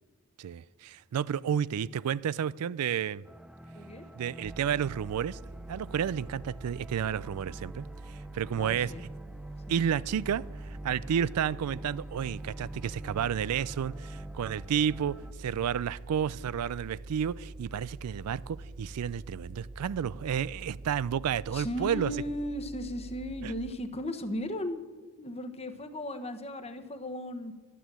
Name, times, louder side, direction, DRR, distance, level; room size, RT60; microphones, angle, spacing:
voice 1, 0.4-3.3 4.2-5.4 5.7-7.9 8.3-8.9 9.7-10.4 10.7-22.1 23.4-23.5, right 8 dB, 85° right, 0.4 m, -31 dB
sound 1, 3.2-15.3, right 1 dB, 5° right, 0.4 m, -47 dB
sound 2, 4.4-23.7, right 2 dB, 25° right, 1.8 m, -45 dB
voice 2, 8.5-9.0 9.7-9.8 21.5-24.8 25.2-27.5, left 1 dB, 30° left, 1.1 m, -36 dB
12.0 x 10.0 x 7.5 m
head